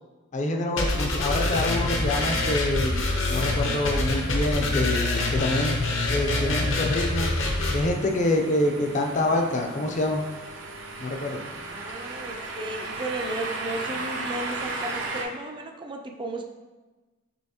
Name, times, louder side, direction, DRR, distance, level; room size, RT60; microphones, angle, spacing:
voice 1, 0.3-3.0 3.3-5.8 6.1-7.3 7.7-10.2 11.0-11.4, left 1 dB, 35° left, 3 dB, 0.5 m, -26 dB
sound 1, 0.8-7.8, left 2 dB, 70° left, 0.8 m, -25 dB
sound 2, 1.8-15.2, right 3 dB, 65° right, 0.6 m, -37 dB
voice 2, 11.7-16.4, right 1 dB, 25° right, 2 dB, 0.4 m, -34 dB
5.6 x 3.3 x 2.8 m, 1.2 s
head